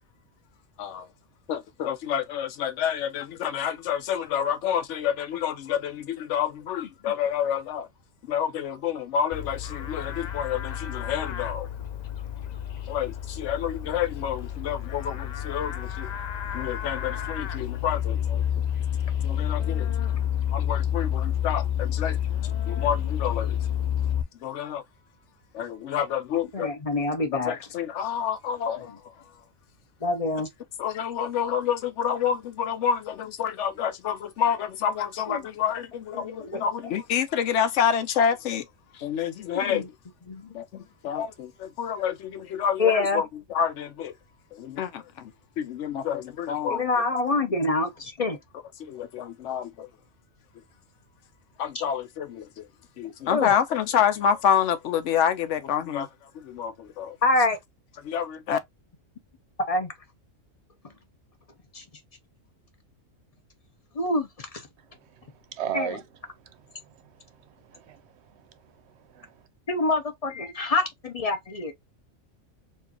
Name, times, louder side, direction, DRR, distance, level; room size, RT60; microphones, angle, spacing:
voice 1, 1.5-7.9 8.3-11.7 12.9-16.1 16.5-18.4 19.2-19.9 20.5-22.2 22.7-23.6 24.4-24.8 25.5-26.7 27.5-29.0 30.8-38.7 38.9-39.8 40.5-44.1 44.5-45.3 45.6-46.8 48.8-49.9 51.6-52.7 53.0-56.1 56.3-57.2 58.0-58.6, left 8 dB, 65° left, 0.9 m, -28 dB
Livestock farm animals working animals, 9.3-24.2, left 9 dB, 85° left, 0.3 m, -29 dB
voice 2, 26.5-27.5 30.0-30.5 35.3-35.5 36.1-36.6 39.7-39.9 40.3-40.5 42.8-43.2 46.7-48.4 51.7-51.8 53.3-53.5 57.2-57.6 59.7-59.9 60.8-60.9 61.7-61.8 63.9-64.6 65.7-65.9 69.7-71.7, left 3 dB, 35° left, 0.6 m, -26 dB
voice 3, 65.0-66.0 66.3-69.4, right 9 dB, 60° right, 0.8 m, -38 dB
4.5 x 2.6 x 2.8 m
omnidirectional pair, 1.4 m